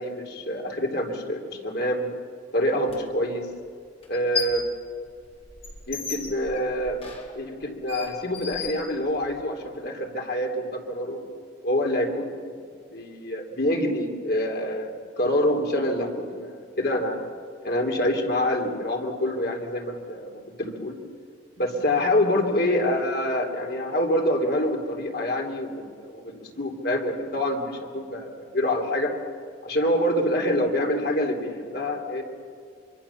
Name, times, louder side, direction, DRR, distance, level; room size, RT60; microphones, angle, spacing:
voice 1, 0.0-2.1 2.5-3.4 4.1-4.6 5.9-7.0 7.3-11.2 11.6-12.4 12.9-17.2 17.6-21.0 21.6-29.1 29.6-32.2, left 1 dB, 60° left, 2 dB, 3.3 m, -26 dB
sound 1, 2.9-3.0 4.0-4.7 5.1-9.4, left 4 dB, 35° left, 3.6 m, -35 dB
25.0 x 25.0 x 7.2 m, 2.2 s
head